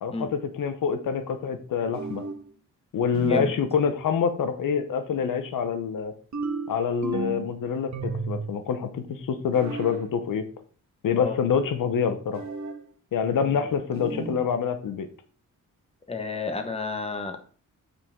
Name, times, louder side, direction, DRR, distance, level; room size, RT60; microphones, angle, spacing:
voice 1, 0.0-2.2 2.9-6.1 6.7-10.5 11.0-12.4 13.1-15.1, left 6 dB, 75° left, 9 dB, 0.9 m, -26 dB
sound 1, 1.9-2.5 3.1-3.7 6.3-7.5 7.9-8.6 9.5-10.0 12.3-12.8 13.9-14.4, right 4 dB, 55° right, 1.3 m, -33 dB
voice 2, 3.2-3.5 11.2-11.4 13.4-13.8 14.0-14.3 16.1-17.4, left 4 dB, 20° left, 6 dB, 1.3 m, -32 dB
8.5 x 4.8 x 3.7 m, 0.42 s
cardioid pair, 90°, 33 cm